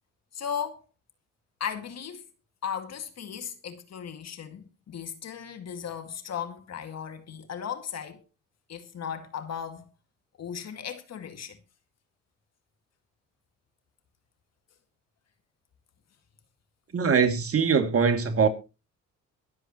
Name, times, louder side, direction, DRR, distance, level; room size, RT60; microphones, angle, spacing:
voice 1, 0.3-0.9 1.6-2.3 2.6-8.2 8.7-9.9 10.4-11.6, left 8 dB, 55° left, 2.0 m, -36 dB
voice 2, 16.9-18.5, right 6 dB, 45° right, 2.6 m, -22 dB
23.0 x 7.7 x 3.0 m
supercardioid pair, 65°, 31 cm